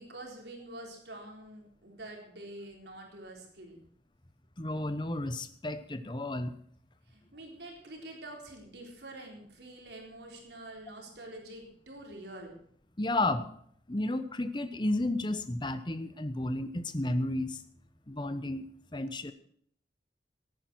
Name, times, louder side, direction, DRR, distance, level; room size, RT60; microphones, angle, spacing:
voice 1, 0.0-3.8 7.1-12.6, right 1 dB, 75° right, 1 dB, 3.9 m, -46 dB
voice 2, 4.6-6.5 13.0-13.4 13.9-17.6 18.1-18.6 18.9-19.3, left 1 dB, 25° left, 12 dB, 1.0 m, -32 dB
17.0 x 9.4 x 6.1 m, 0.63 s
head